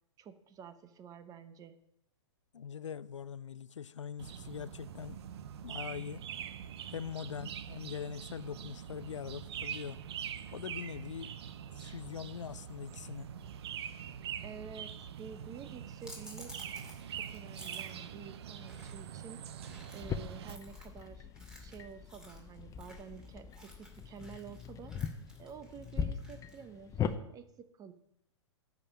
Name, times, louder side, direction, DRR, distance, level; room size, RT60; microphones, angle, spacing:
voice 1, 0.2-1.8 14.4-16.6 17.1-19.4 19.9-21.3 21.6-24.9 25.4-27.9, right 7 dB, 25° right, 0.9 m, -50 dB
voice 2, 2.5-5.2 5.6-6.3 6.9-10.0 10.5-11.3 11.8-13.3, left 8 dB, 80° left, 0.4 m, -42 dB
sound 1, 4.2-20.6, right 9 dB, 60° right, 0.7 m, -44 dB
sound 2, 16.0-26.7, left 1 dB, 5° right, 2.3 m, -55 dB
sound 3, 20.0-27.2, left 7 dB, 20° left, 0.7 m, -40 dB
12.0 x 5.3 x 7.3 m
figure-of-eight pair, 105°, 15 cm